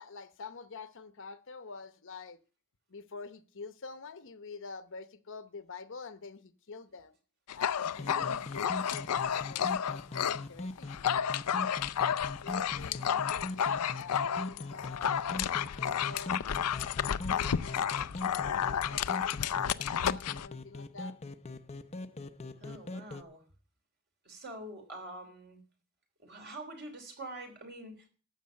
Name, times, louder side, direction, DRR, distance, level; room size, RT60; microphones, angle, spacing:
voice 1, 0.0-2.4 2.9-7.1 7.5-11.3 12.4-16.4 17.0-21.2, left 4 dB, 60° left, 0.9 m, -47 dB
Dog, 7.5-10.4 10.8-20.5, left 8 dB, 90° left, 0.5 m, -31 dB
sound 1, 7.9-23.2, left 2 dB, 30° left, 0.7 m, -42 dB
voice 2, 8.0-8.5 13.0-13.2 18.1-18.2 22.6-23.4 24.2-25.6 26.2-28.1, right 1 dB, 50° right, 3.4 m, -46 dB
12.5 x 7.4 x 7.6 m
head